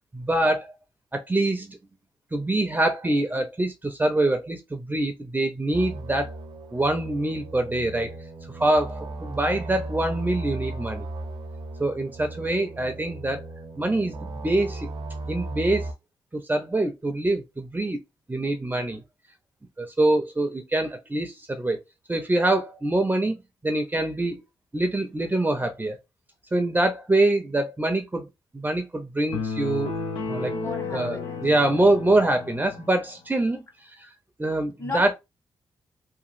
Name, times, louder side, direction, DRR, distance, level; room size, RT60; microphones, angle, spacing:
voice 1, 0.1-0.7 1.1-1.8 2.3-6.4 6.7-8.1 8.5-11.1 11.8-13.4 13.8-14.9 15.3-15.9 16.3-18.0 18.3-19.0 19.8-21.8 22.1-23.4 23.6-24.4 24.7-26.0 26.5-28.3 28.5-29.9 30.3-30.5 30.9-33.6 34.0-34.1 34.4-35.1, right 2 dB, 20° right, 0.6 m, -24 dB
sound 1, 5.7-15.9, right 2 dB, 75° right, 0.7 m, -36 dB
sound 2, 29.3-32.9, left 4 dB, 80° left, 0.6 m, -32 dB
voice 2, 30.5-31.4 34.8-35.1, left 2 dB, 35° left, 1.5 m, -34 dB
2.9 x 2.4 x 2.5 m
supercardioid pair, 55°, 9 cm